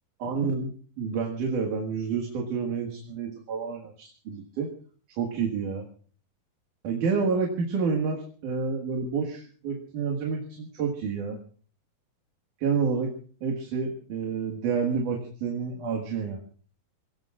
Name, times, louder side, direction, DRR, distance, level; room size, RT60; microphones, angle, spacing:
voice 1, 0.2-4.7 5.2-5.9 6.8-11.4 12.6-13.1 13.4-16.4, right 5 dB, 65° right, 1 dB, 3.1 m, -29 dB
28.5 x 18.0 x 2.4 m, 0.43 s
omnidirectional pair, 4.1 m